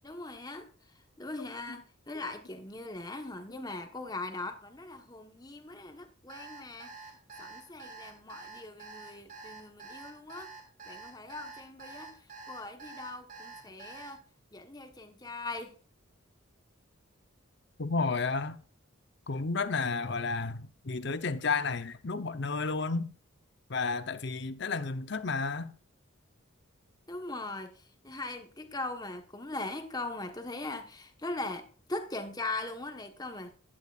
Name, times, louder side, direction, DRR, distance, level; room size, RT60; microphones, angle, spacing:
voice 1, 0.0-0.7 1.2-6.9 7.4-10.5 10.9-12.2 12.5-14.2 14.5-15.8 27.1-33.5, left 2 dB, 20° left, 1.2 m, -40 dB
Alarm, 6.3-14.1, right 4 dB, 40° right, 3.1 m, -47 dB
voice 2, 17.8-18.6 19.3-23.1 23.7-25.7, left 4 dB, 55° left, 0.8 m, -32 dB
15.0 x 11.0 x 2.5 m
head